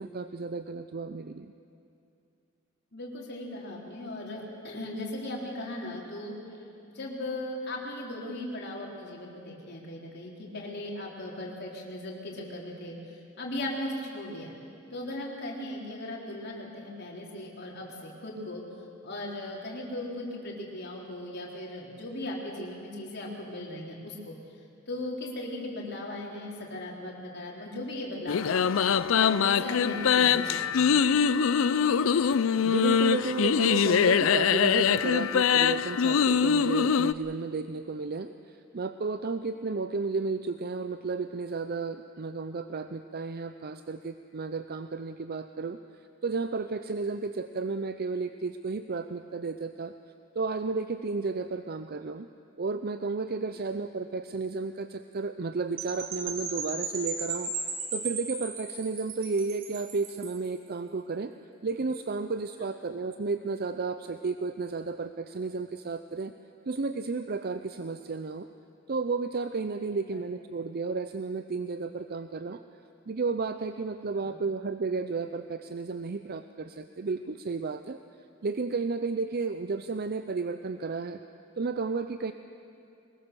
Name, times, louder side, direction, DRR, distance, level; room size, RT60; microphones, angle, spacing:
voice 1, 0.0-1.5 32.6-45.8 46.2-49.9 50.4-52.3 52.6-57.5 57.9-61.3 61.6-66.3 66.7-68.5 68.9-72.6 73.1-78.0 78.4-81.2 81.6-82.3, right 4 dB, 50° right, 9 dB, 0.6 m, -32 dB
voice 2, 2.9-6.4 6.8-13.0 13.4-14.5 14.9-18.6 19.0-24.4 24.9-28.8 29.1-30.9 53.5-53.7 69.9-70.2 74.1-74.4, left 1 dB, 55° left, -2 dB, 3.7 m, -38 dB
sound 1, 28.3-37.1, left 7 dB, 80° left, 0.5 m, -23 dB
Percussion / Wind chime, 55.8-60.5, right 4 dB, 75° right, 2.9 m, -36 dB
22.5 x 21.0 x 6.9 m, 2.6 s
head